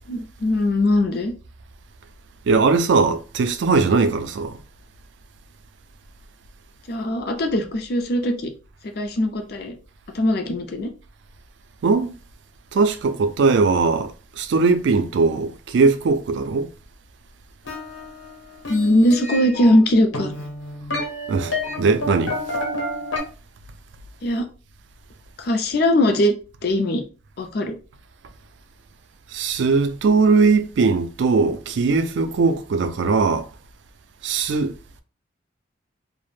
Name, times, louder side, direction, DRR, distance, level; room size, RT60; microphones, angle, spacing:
voice 1, 0.1-1.3 6.9-8.5 9.0-9.7 10.1-10.9 18.7-20.5 24.2-24.5 25.4-26.3 26.6-27.0 27.4-27.8, left 1 dB, 50° left, 0.4 m, -20 dB
voice 2, 2.5-4.6 11.8-12.1 12.7-14.1 14.4-16.7 21.3-22.4 29.3-33.4 34.2-34.7, right 4 dB, 65° right, 0.3 m, -19 dB
sound 1, 17.6-23.2, left 1 dB, 75° left, 0.9 m, -30 dB
2.4 x 2.0 x 3.1 m
head